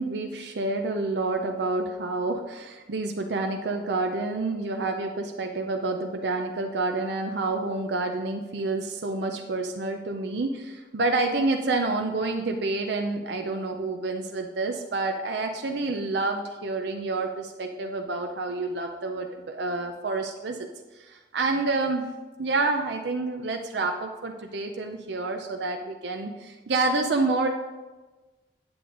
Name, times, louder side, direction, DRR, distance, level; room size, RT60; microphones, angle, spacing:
voice 1, 0.0-20.7 20.9-22.0 22.4-27.5, right 3 dB, 75° right, 4 dB, 0.6 m, -28 dB
8.6 x 7.8 x 3.8 m, 1.2 s
head